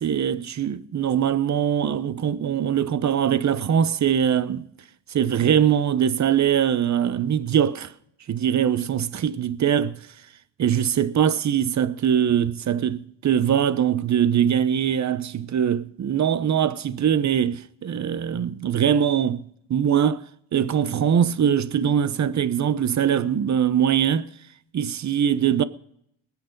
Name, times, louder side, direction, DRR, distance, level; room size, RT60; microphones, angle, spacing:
voice 1, 0.0-4.6 5.1-7.9 8.3-10.0 10.6-19.4 19.7-20.2 20.5-24.3 24.7-25.6, right 9 dB, 40° right, 0.9 m, -22 dB
20.5 x 8.6 x 5.2 m
cardioid pair, 85°, 41 cm